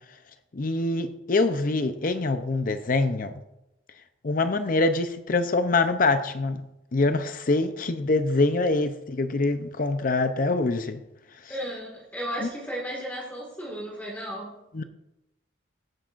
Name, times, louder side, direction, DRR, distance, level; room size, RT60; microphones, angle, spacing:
voice 1, 0.5-3.3 4.2-6.6 6.9-11.0 12.4-12.5 14.7-14.8, left 3 dB, 45° left, 0.6 m, -24 dB
voice 2, 11.5-14.6, equal, 10° left, 1.9 m, -34 dB
15.5 x 8.2 x 2.5 m
head